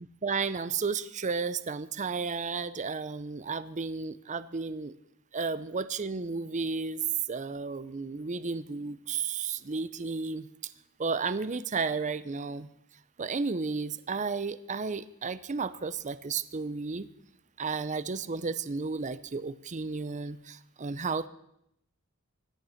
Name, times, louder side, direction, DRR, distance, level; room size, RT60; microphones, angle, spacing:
voice 1, 0.0-4.9 5.3-7.0 7.3-10.5 11.0-12.7 13.2-17.1 17.6-21.3, right 4 dB, 35° right, 15 dB, 0.6 m, -33 dB
24.5 x 9.8 x 5.8 m, 0.78 s
head